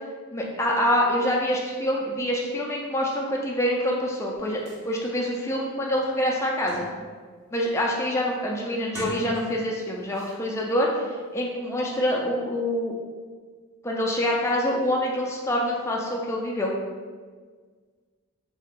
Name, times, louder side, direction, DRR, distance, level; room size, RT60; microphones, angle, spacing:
voice 1, 0.3-4.6 4.8-6.9 7.5-10.9 11.3-12.9 13.8-16.7, equal, 10° left, -2 dB, 0.3 m, -26 dB
sound 1, 4.3-4.4 4.7-4.8 5.4-5.5 5.9-7.2 7.6-8.0 8.8-9.8 10.1-10.4, left 1 dB, 65° right, 0.9 m, -39 dB
2.7 x 2.3 x 3.6 m, 1.5 s
head